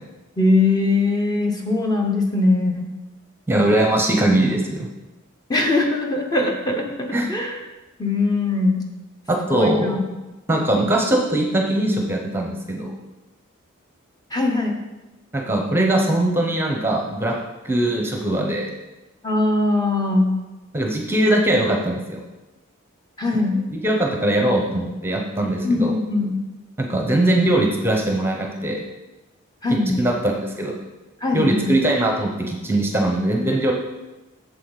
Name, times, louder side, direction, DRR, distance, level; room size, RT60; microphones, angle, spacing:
voice 1, 0.4-2.9 5.5-7.6 8.0-8.8 9.5-10.0 14.3-14.8 19.2-20.3 23.2-23.6 25.6-26.3 29.6-30.1 31.2-31.7, left 2 dB, 20° left, 1 dB, 0.9 m, -21 dB
voice 2, 3.5-4.9 7.1-7.3 9.3-10.0 10.5-12.9 15.3-17.4 17.6-18.7 20.7-22.2 23.7-26.0 26.8-28.8 30.0-30.8 31.3-33.7, right 1 dB, 10° right, 1 dB, 0.8 m, -21 dB
8.3 x 7.0 x 4.0 m, 1.1 s
head